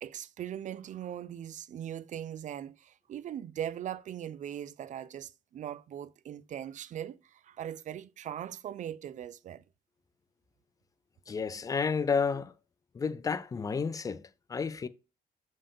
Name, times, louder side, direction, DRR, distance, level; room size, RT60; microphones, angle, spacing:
voice 1, 0.0-9.6, right 10 dB, 45° right, 0.4 m, -40 dB
voice 2, 11.3-12.5 12.9-14.9, left 5 dB, 20° left, 0.4 m, -31 dB
6.9 x 5.4 x 3.5 m
cardioid pair, 175°, 17 cm